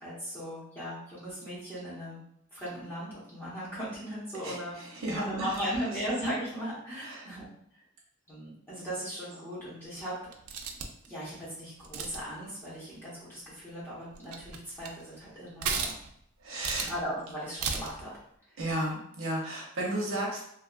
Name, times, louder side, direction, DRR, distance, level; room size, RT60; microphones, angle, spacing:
voice 1, 0.0-2.2 2.5-4.7 5.1-7.5 8.3-10.1 11.1-15.9 16.8-18.1 18.5-18.6, equal, 10° left, -10 dB, 1.1 m, -37 dB
voice 2, 4.4-5.6 7.0-7.3 16.4-16.9 18.6-20.4, right 1 dB, 65° right, -3 dB, 0.8 m, -33 dB
sound 1, 10.3-11.1 11.8-12.3 13.7-13.8 14.1-15.0 15.6-16.2 16.6-17.0 17.6-18.0, right 5 dB, 85° right, 0.4 m, -34 dB
2.8 x 2.4 x 2.4 m, 0.71 s
head